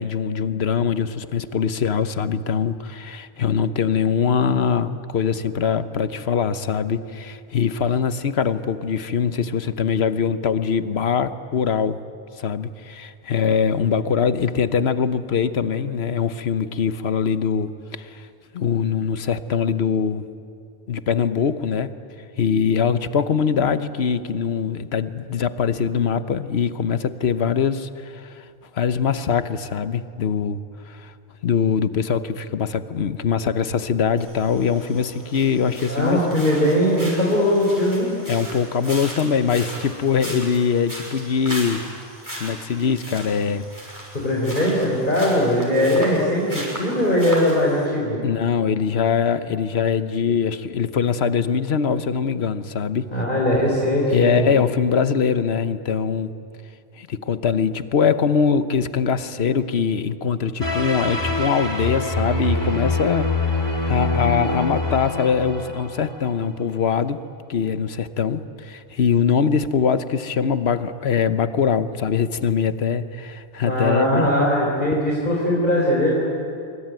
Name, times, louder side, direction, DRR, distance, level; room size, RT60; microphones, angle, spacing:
voice 1, 0.0-12.0 12.4-18.3 18.5-20.2 20.9-22.0 22.4-28.5 28.7-30.6 30.9-31.1 31.4-36.2 38.3-41.9 42.4-43.7 48.2-53.1 54.1-56.3 57.0-63.3 63.8-67.2 67.5-74.3, left 6 dB, 80° left, 12 dB, 1.2 m, -22 dB
sound 1, 34.2-47.9, equal, 20° right, 6.4 m, -37 dB
voice 2, 35.9-38.1 44.1-48.2 53.1-54.5 73.6-76.1, left 1 dB, 50° left, -3 dB, 4.1 m, -20 dB
sound 2, 60.6-66.4, left 2 dB, 25° left, 2.7 m, -24 dB
26.0 x 24.5 x 9.4 m, 2.4 s
omnidirectional pair, 1.0 m